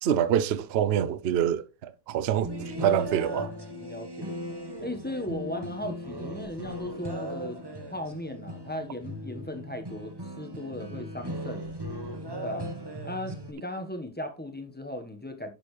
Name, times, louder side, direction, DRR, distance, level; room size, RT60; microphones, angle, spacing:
voice 1, 0.0-3.5, right 9 dB, 60° right, 0.7 m, -26 dB
sound 1, 2.4-13.5, right 1 dB, 15° right, 1.0 m, -37 dB
voice 2, 3.8-4.4 4.8-7.6 7.9-11.7 12.4-12.7 13.0-15.5, left 1 dB, 5° left, 1.2 m, -37 dB
11.0 x 6.9 x 3.3 m
omnidirectional pair, 1.7 m